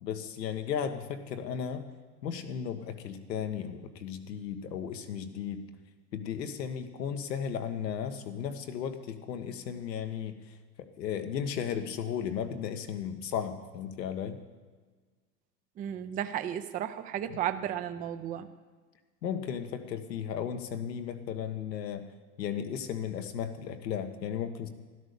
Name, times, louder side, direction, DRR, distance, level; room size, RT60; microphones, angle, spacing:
voice 1, 0.0-1.8 2.2-5.6 6.1-10.4 11.0-14.4 17.3-17.4 19.2-22.1 22.4-24.7, left 8 dB, 85° left, 7 dB, 1.6 m, -35 dB
voice 2, 15.8-18.5, right 10 dB, 20° right, 10 dB, 0.5 m, -34 dB
12.5 x 11.5 x 6.9 m, 1.4 s
hypercardioid pair, 120°, 49 cm